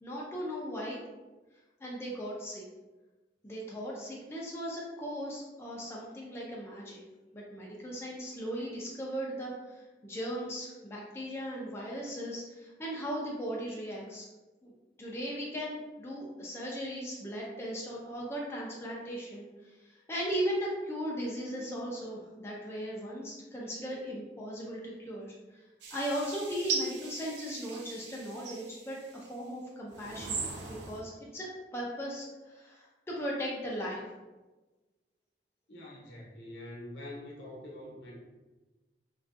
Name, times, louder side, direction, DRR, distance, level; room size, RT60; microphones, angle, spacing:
voice 1, 0.0-1.0 1.8-2.6 3.4-7.0 7.3-14.3 14.6-14.7 15.0-19.4 19.8-25.3 25.9-34.1, equal, 15° left, -4 dB, 0.3 m, -37 dB
sound 1, 25.8-29.3 29.9-31.0, right 5 dB, 75° right, 0.4 m, -39 dB
voice 2, 35.7-38.2, left 1 dB, 85° left, -3 dB, 0.8 m, -45 dB
2.5 x 2.2 x 2.4 m, 1.2 s
head